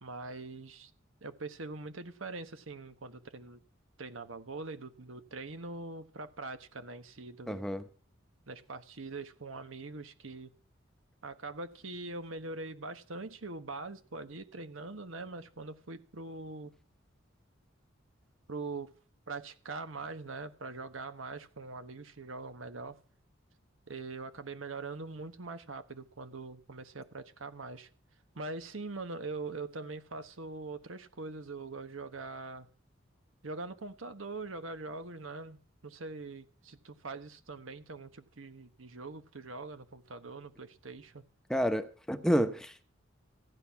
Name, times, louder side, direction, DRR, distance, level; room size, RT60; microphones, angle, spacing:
voice 1, 0.0-0.9 1.2-3.6 4.0-7.7 8.5-10.5 11.2-16.7 18.5-18.9 19.3-23.0 23.9-27.9 28.3-32.7 33.4-35.6 35.8-41.2, right 3 dB, 90° right, 1.3 m, -42 dB
voice 2, 7.5-7.8 41.5-42.8, equal, 5° left, 0.9 m, -29 dB
15.0 x 10.0 x 5.8 m
head